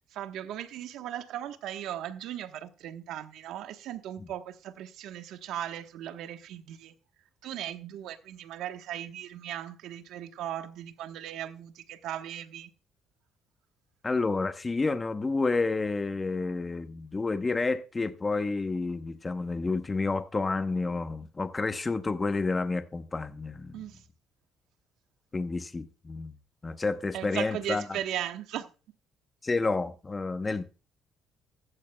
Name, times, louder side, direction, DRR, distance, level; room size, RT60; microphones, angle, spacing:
voice 1, 0.1-6.9 7.4-12.7 23.7-24.0 27.1-28.7, right 11 dB, 75° right, 1.2 m, -37 dB
voice 2, 14.0-23.8 25.3-26.3 26.6-28.0 29.4-30.6, left 3 dB, 25° left, 0.9 m, -30 dB
14.5 x 13.0 x 2.3 m
cardioid pair, 100°, 0 cm